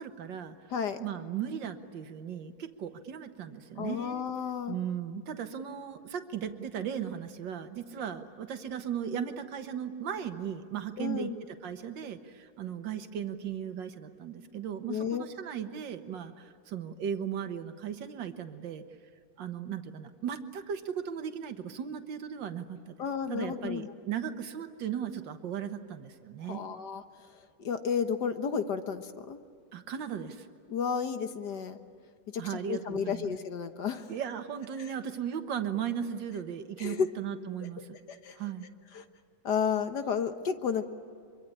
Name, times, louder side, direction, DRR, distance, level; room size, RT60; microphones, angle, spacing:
voice 1, 0.0-0.6 1.0-4.3 4.7-18.8 19.4-22.9 23.3-26.6 29.7-30.5 32.4-33.3 34.1-38.0 38.4-38.7, right 8 dB, 65° right, 8 dB, 1.9 m, -37 dB
voice 2, 3.8-4.8 11.0-11.3 14.9-15.2 23.0-23.9 26.4-27.0 27.3-29.4 30.7-31.8 32.3-34.1 34.8-34.9 36.8-37.1 38.1-38.4 38.9-39.0 39.4-40.9, left 7 dB, 60° left, 8 dB, 1.7 m, -32 dB
24.5 x 23.5 x 10.0 m, 2.2 s
omnidirectional pair, 2.2 m